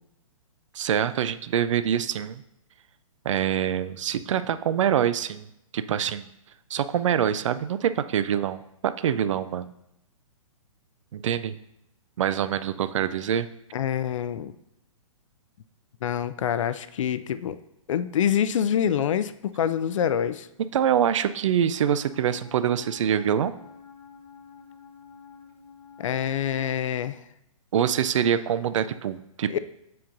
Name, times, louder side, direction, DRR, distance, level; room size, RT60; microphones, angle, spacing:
voice 1, 0.7-2.4 3.2-5.5 5.7-6.3 6.7-9.7 11.1-11.5 12.2-13.5 20.7-23.5 27.7-29.6, right 9 dB, 60° right, 14 dB, 0.4 m, -25 dB
voice 2, 13.7-14.5 16.0-17.6 17.9-20.5 26.0-27.2 29.5-29.6, left 9 dB, 60° left, 14 dB, 0.4 m, -26 dB
Wind instrument woodwind instrument, 22.0-26.8, left 6 dB, 15° left, 1.0 m, -49 dB
7.6 x 5.5 x 2.6 m, 0.81 s
hypercardioid pair, 140°, 18 cm